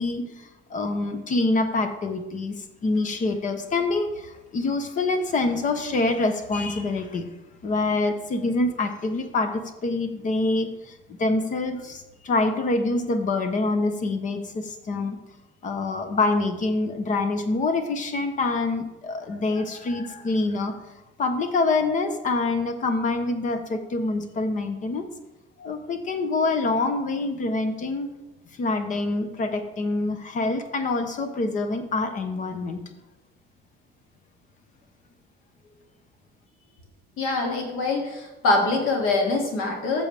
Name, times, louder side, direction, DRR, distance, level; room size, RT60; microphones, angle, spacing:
voice 1, 0.0-2.6 2.8-7.3 7.6-15.2 15.6-20.7 21.2-25.1 25.6-28.1 28.6-32.8, left 3 dB, 40° left, 8 dB, 0.9 m, -26 dB
voice 2, 37.2-40.0, left 3 dB, 90° left, 1 dB, 2.4 m, -24 dB
13.5 x 7.0 x 3.4 m, 1.0 s
cardioid pair, 165°, 20 cm